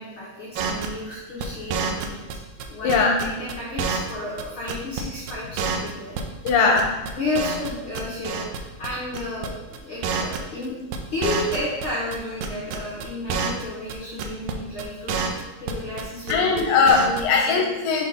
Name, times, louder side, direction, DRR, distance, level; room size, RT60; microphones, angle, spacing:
voice 1, 0.0-2.3 2.7-6.2 7.1-10.8 11.1-17.6, left 2 dB, 65° left, -8 dB, 1.3 m, -32 dB
sound 1, 0.6-4.1 4.4-4.5 4.7-5.0 5.3-5.4 5.6-6.5 6.8-7.7 7.9-8.6 8.8-8.9 9.1-9.5 9.7-9.8 10.0-10.7 10.9-12.2 12.4-13.6 13.9-14.0 14.2-14.5 14.8-16.0 16.3-16.6 16.9-17.2, right 5 dB, 80° right, 1.9 m, -28 dB
voice 2, 6.4-6.9 16.3-18.0, left 5 dB, 80° left, 1 dB, 2.2 m, -19 dB
6.2 x 3.7 x 5.1 m, 1.2 s
omnidirectional pair, 4.2 m